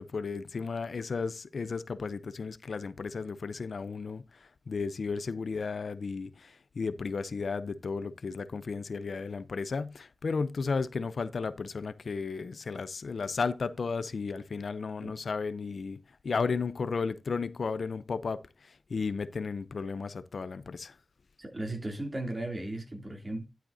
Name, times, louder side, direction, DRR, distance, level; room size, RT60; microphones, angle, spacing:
voice 1, 0.0-21.0, left 4 dB, 80° left, 0.6 m, -34 dB
voice 2, 21.4-23.4, right 1 dB, 40° right, 2.9 m, -36 dB
11.5 x 7.5 x 2.7 m
cardioid pair, 50°, 0 cm